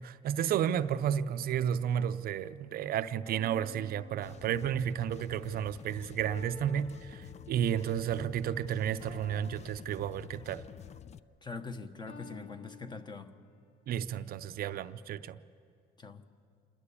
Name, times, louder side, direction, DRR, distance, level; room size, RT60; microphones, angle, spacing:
voice 1, 0.0-10.6 13.9-15.4, right 9 dB, 60° right, 11 dB, 0.6 m, -32 dB
sound 1, 1.1-1.9 3.3-5.1 6.3-7.9 9.0-10.7 12.1-13.7, left 2 dB, 65° left, 4.3 m, -54 dB
sound 2, 4.1-11.2, left 9 dB, 40° left, 0.5 m, -49 dB
voice 2, 11.4-13.3 16.0-16.2, left 4 dB, 25° left, 8 dB, 1.2 m, -43 dB
27.5 x 12.0 x 8.5 m, 2.3 s
cardioid pair, 110°, 17 cm